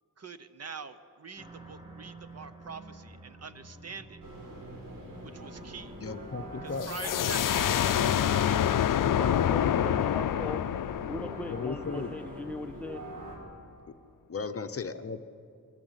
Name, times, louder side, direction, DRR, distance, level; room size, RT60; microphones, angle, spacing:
voice 1, 0.2-4.2 5.2-5.9 6.6-8.1 8.4-8.6, right 5 dB, 45° right, 11 dB, 0.9 m, -44 dB
sound 1, 1.4-9.9, right 2 dB, 15° right, 2.3 m, -50 dB
sound 2, 4.2-13.4, right 1 dB, 65° right, 5.4 m, -43 dB
voice 2, 6.0-6.9 9.7-9.8 11.5-12.1 14.3-15.2, left 5 dB, 40° left, 10 dB, 0.8 m, -36 dB
sound 3, 6.8-12.3, left 10 dB, 65° left, 0.5 m, -27 dB
voice 3, 9.2-13.0, left 2 dB, 5° left, 8 dB, 0.5 m, -39 dB
23.5 x 15.5 x 8.1 m, 2.5 s
wide cardioid pair, 130°, 35 cm